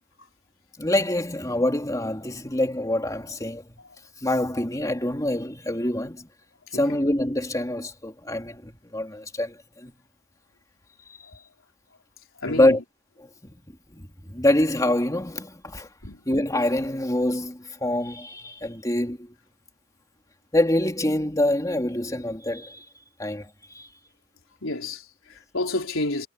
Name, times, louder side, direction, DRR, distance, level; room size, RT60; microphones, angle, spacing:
voice 1, 0.8-3.7 4.2-6.3 6.7-9.9 12.5-12.8 13.4-13.5 13.9-15.9 16.3-19.3 20.5-22.9 23.2-23.9, left 1 dB, 15° left, 2.9 m, -25 dB
voice 2, 12.4-12.8 16.0-16.2 24.6-26.3, left 2 dB, 75° left, 4.0 m, -30 dB
head